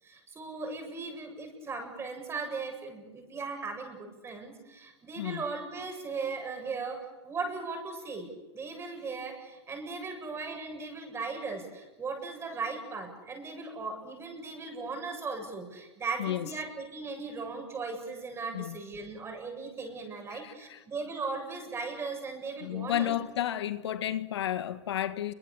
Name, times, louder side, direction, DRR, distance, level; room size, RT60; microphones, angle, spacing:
voice 1, 0.0-23.1, right 4 dB, 20° right, 7.7 m, -38 dB
voice 2, 22.6-25.3, left 12 dB, 75° left, 1.5 m, -32 dB
29.0 x 24.0 x 7.1 m
hypercardioid pair, 130°, 14 cm